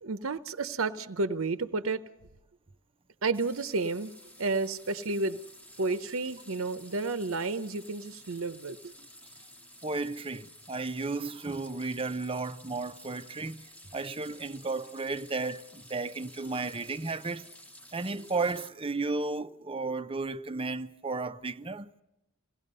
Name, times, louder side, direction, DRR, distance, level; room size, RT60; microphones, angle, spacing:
voice 1, 0.0-2.0 3.2-5.4 5.8-8.9, right 3 dB, 70° right, 0.8 m, -31 dB
sound 1, 3.3-18.7, left 1 dB, 5° left, 1.3 m, -53 dB
voice 2, 9.8-13.6 13.9-17.5 17.9-21.9, right 3 dB, 25° right, 0.7 m, -33 dB
27.5 x 18.0 x 5.5 m
head